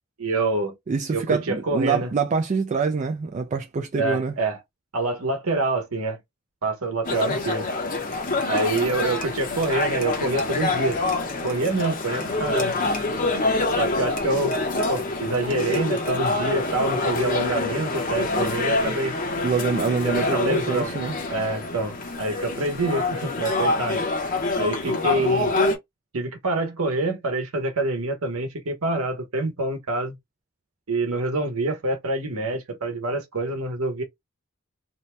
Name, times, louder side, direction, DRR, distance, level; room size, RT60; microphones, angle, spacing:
voice 1, 0.2-0.7 1.1-2.1 4.0-4.6 4.9-6.2 6.6-7.7 8.5-11.0 11.4-12.7 13.8-14.5 14.9-19.1 20.0-20.9 21.3-24.1 24.6-25.6 26.1-30.2 30.9-34.0, right 2 dB, 90° right, 0.9 m, -26 dB
voice 2, 0.9-4.4 8.1-8.2 19.4-21.2, right 5 dB, 35° right, 0.3 m, -25 dB
sound 1, 7.0-25.8, left 2 dB, 40° left, 0.8 m, -26 dB
2.8 x 2.1 x 3.1 m
head